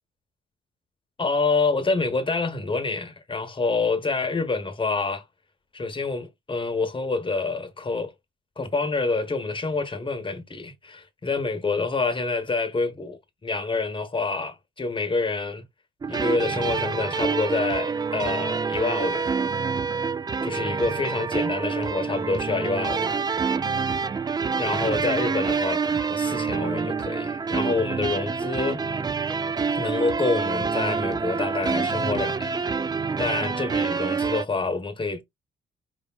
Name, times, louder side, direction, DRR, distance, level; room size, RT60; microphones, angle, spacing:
voice 1, 1.2-5.2 5.7-8.1 8.6-15.6 16.1-19.4 20.4-23.3 24.6-28.8 29.7-32.6 32.9-35.2, left 3 dB, 25° left, 1.1 m, -27 dB
sound 1, 16.0-34.4, right 5 dB, 20° right, 0.3 m, -27 dB
5.0 x 3.5 x 2.3 m
cardioid pair, 90°, 20 cm